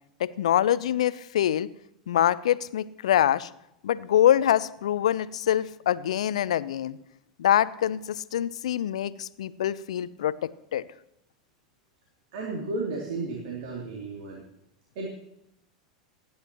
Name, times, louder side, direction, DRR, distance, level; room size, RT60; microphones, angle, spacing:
voice 1, 0.2-1.7 2.1-3.5 3.8-7.0 7.4-10.8, left 11 dB, 70° left, 18 dB, 0.6 m, -25 dB
voice 2, 12.3-14.4 14.9-15.1, right 3 dB, 60° right, -1 dB, 3.0 m, -33 dB
28.0 x 10.5 x 3.0 m, 0.82 s
hypercardioid pair, 85°, 3 cm